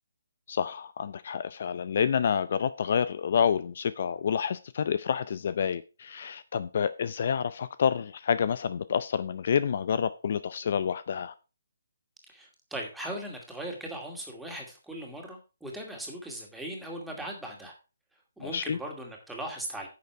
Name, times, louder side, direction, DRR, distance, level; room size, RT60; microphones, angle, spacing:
voice 1, 0.5-11.3 18.4-18.8, left 7 dB, 50° left, 0.5 m, -28 dB
voice 2, 12.3-17.7 18.4-19.9, right 1 dB, 5° right, 2.3 m, -39 dB
10.5 x 6.7 x 4.6 m
hypercardioid pair, 150°, 0 cm